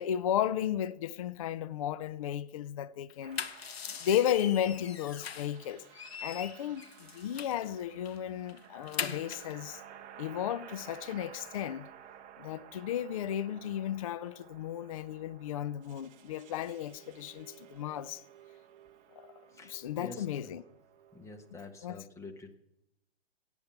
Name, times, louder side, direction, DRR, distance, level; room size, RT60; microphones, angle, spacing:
voice 1, 0.0-3.4 3.9-5.8 6.2-9.8 10.2-11.9 12.4-18.2 19.2-19.3 19.6-20.6 21.8-22.0, left 10 dB, 35° left, 0.4 m, -34 dB
sound 1, 3.1-5.6 5.9-7.6 8.0-8.2 8.5-9.5, left 7 dB, 60° left, 1.0 m, -41 dB
sound 2, 3.2-21.9, right 9 dB, 20° right, 0.9 m, -54 dB
voice 2, 19.5-20.6 21.1-22.6, left 2 dB, 10° left, 1.0 m, -47 dB
17.0 x 8.9 x 5.6 m
figure-of-eight pair, 115°, 34 cm